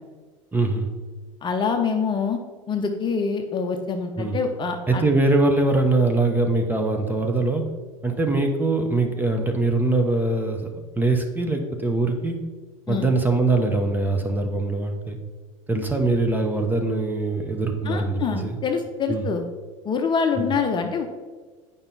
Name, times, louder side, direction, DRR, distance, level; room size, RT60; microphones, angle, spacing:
voice 1, 0.5-0.9 4.2-4.4 4.9-7.6 8.0-12.4 12.9-15.2 15.7-18.6 19.1-19.3 20.3-20.5, right 2 dB, 10° right, 4 dB, 1.1 m, -22 dB
voice 2, 1.4-2.4 2.7-5.0 12.9-13.1 17.8-19.5 19.8-21.1, left 5 dB, 30° left, 4 dB, 0.9 m, -25 dB
8.7 x 5.4 x 4.2 m, 1.4 s
hypercardioid pair, 80°, 17 cm